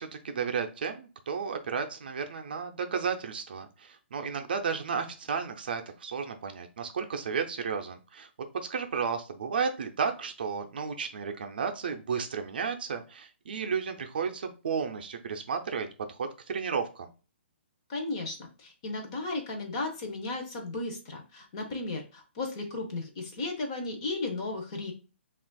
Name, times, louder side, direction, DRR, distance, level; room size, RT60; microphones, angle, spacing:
voice 1, 0.0-8.3 8.5-17.1, right 6 dB, 50° right, 5 dB, 0.5 m, -33 dB
voice 2, 17.9-24.9, left 2 dB, 25° left, 3 dB, 0.7 m, -35 dB
6.0 x 2.4 x 2.3 m, 0.33 s
hypercardioid pair, 175°, 7 cm